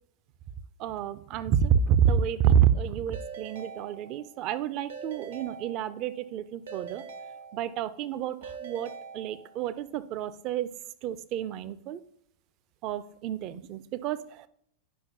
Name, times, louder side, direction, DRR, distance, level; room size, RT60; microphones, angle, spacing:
voice 1, 0.8-7.0 7.5-10.7 11.0-12.0 12.8-14.5, right 9 dB, 40° right, 14 dB, 0.4 m, -28 dB
Keyboard (musical) / Ringtone, 3.1-4.5 4.9-6.2 6.7-8.0 8.4-9.8, right 5 dB, 65° right, 0.9 m, -43 dB
9.6 x 5.7 x 2.7 m, 0.67 s
figure-of-eight pair, 90°, 0 cm